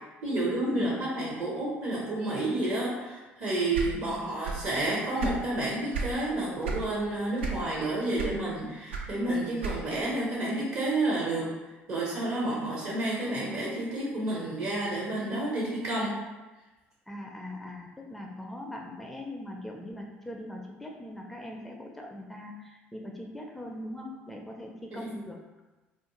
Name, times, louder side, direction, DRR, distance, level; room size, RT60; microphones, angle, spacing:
voice 1, 0.2-11.5 11.9-16.2 24.9-25.1, right 2 dB, 50° right, -5 dB, 0.7 m, -30 dB
sound 1, 3.7-4.7 5.0-6.2 6.6-6.9 7.4-7.8 8.2-10.1, right 5 dB, 75° right, 0.3 m, -33 dB
voice 2, 3.8-4.2 17.1-25.4, left 1 dB, ahead, 0 dB, 0.4 m, -41 dB
2.4 x 2.1 x 2.9 m, 1.1 s
figure-of-eight pair, 55°, 6 cm